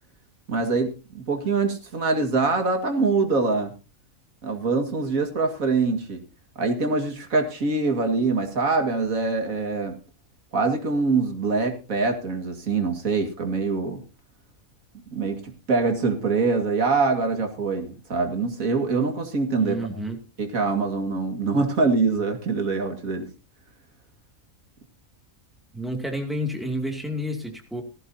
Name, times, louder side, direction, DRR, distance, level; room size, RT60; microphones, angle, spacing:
voice 1, 0.5-3.7 4.4-6.2 6.6-10.0 10.5-14.0 15.1-19.8 20.4-23.3, right 4 dB, 85° right, 5 dB, 2.5 m, -24 dB
voice 2, 19.6-20.2 25.7-27.8, equal, ahead, 2 dB, 2.4 m, -30 dB
17.0 x 14.5 x 2.8 m, 0.31 s
omnidirectional pair, 1.4 m